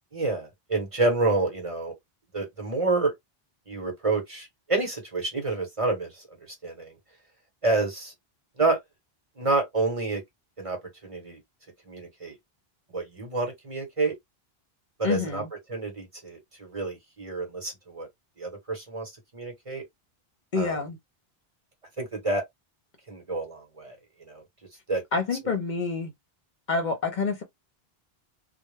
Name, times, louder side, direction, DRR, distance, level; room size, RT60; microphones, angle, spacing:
voice 1, 0.1-1.9 2.3-3.1 3.7-6.2 6.6-7.0 7.6-8.1 8.6-8.8 9.4-10.2 10.6-10.8 11.0-11.4 11.9-12.3 12.9-14.1 15.0-15.4 15.7-18.1 18.4-19.8 20.6-20.8 22.0-22.4 23.1-24.0 24.3-24.4 24.9-25.0, right 3 dB, 35° right, 0.9 m, -28 dB
voice 2, 15.0-15.5 20.5-21.0 25.1-26.1 26.7-27.4, left 4 dB, 55° left, 0.7 m, -27 dB
2.1 x 2.0 x 3.2 m
omnidirectional pair, 1.0 m